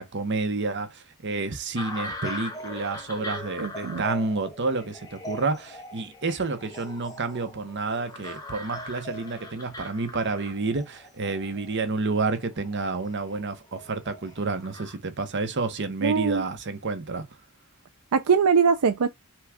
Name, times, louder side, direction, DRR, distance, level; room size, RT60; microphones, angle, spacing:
voice 1, 0.0-17.2, right 3 dB, 50° right, 0.9 m, -29 dB
sound 1, 1.8-15.0, left 1 dB, 15° left, 1.0 m, -40 dB
voice 2, 3.6-4.0 16.0-16.4 18.1-19.1, right 6 dB, 80° right, 0.5 m, -22 dB
5.9 x 2.3 x 3.5 m
head